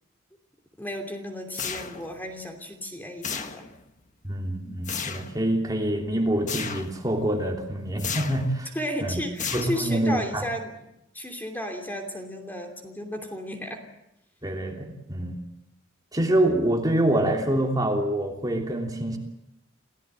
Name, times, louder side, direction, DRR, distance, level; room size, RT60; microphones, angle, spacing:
voice 1, 0.8-3.7 8.7-10.7 11.1-13.8, equal, 10° left, 3 dB, 3.0 m, -33 dB
sound 1, 1.5-2.2 3.2-3.9 4.8-5.3 6.5-7.0 8.0-8.5 9.4-10.1, left 6 dB, 40° left, 1.6 m, -33 dB
voice 2, 4.2-8.7 9.0-9.2 9.5-10.4 14.4-15.4 16.1-19.2, right 1 dB, 20° right, 1 dB, 3.1 m, -26 dB
28.5 x 16.5 x 9.1 m, 0.84 s
head